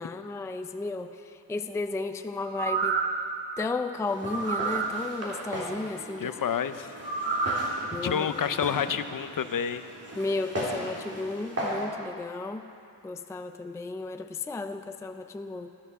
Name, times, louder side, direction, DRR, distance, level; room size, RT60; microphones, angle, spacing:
voice 1, 0.0-3.0 3.6-6.3 7.9-8.4 10.1-12.7 13.0-15.7, left 3 dB, 5° left, 7 dB, 0.4 m, -33 dB
sound 1, 2.4-3.2 4.2-4.9 7.0-7.7 8.2-8.3, right 4 dB, 90° right, 1.2 m, -28 dB
Walk footsteps, 4.1-11.9, equal, 35° right, 3.0 m, -38 dB
voice 2, 6.2-6.9 8.0-9.8, left 8 dB, 50° left, 11 dB, 0.6 m, -29 dB
14.5 x 11.5 x 6.8 m, 2.6 s
wide cardioid pair, 150°, 42 cm